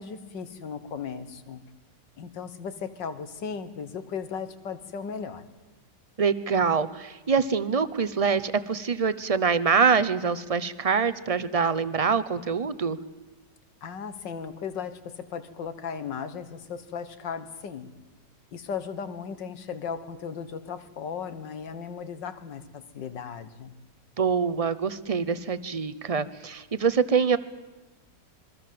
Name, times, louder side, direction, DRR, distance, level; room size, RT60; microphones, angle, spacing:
voice 1, 0.0-1.6 2.2-5.5 13.8-17.9 18.5-23.8, left 6 dB, 85° left, 11 dB, 2.1 m, -36 dB
voice 2, 6.2-13.0 24.2-27.4, right 5 dB, 40° right, 15 dB, 0.5 m, -25 dB
27.0 x 22.5 x 7.7 m, 1.2 s
omnidirectional pair, 1.9 m